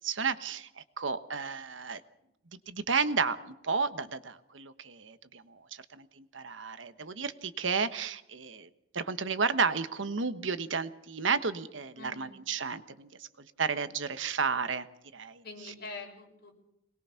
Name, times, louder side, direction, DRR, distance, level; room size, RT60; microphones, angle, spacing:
voice 1, 0.0-2.0 2.5-8.7 8.9-13.3 13.6-14.9 15.1-15.4, right 5 dB, 85° right, 12 dB, 1.2 m, -32 dB
voice 2, 11.9-12.3 15.4-16.5, left 3 dB, 55° left, 1 dB, 6.2 m, -44 dB
23.0 x 20.5 x 5.8 m, 0.79 s
head